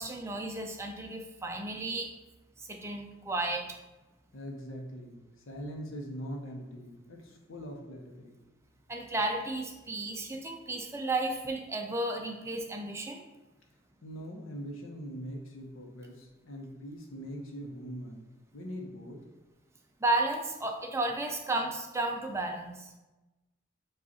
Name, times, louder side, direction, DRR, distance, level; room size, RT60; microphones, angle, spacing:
voice 1, 0.0-2.1 2.6-3.6 8.9-13.2 20.0-22.9, right 2 dB, 15° right, 3 dB, 0.4 m, -33 dB
voice 2, 4.3-8.3 14.0-18.3 18.5-19.2, equal, 80° left, 1 dB, 0.8 m, -42 dB
5.0 x 2.4 x 4.1 m, 1.1 s
head